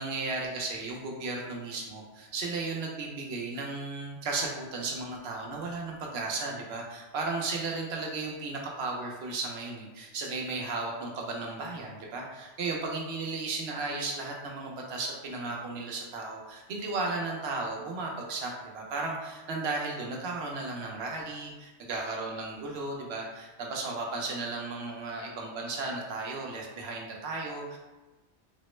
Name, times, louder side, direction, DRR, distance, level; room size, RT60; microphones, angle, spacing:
voice 1, 0.0-27.8, right 3 dB, 65° right, 0 dB, 0.8 m, -35 dB
3.5 x 2.0 x 3.1 m, 1.2 s
omnidirectional pair, 1.3 m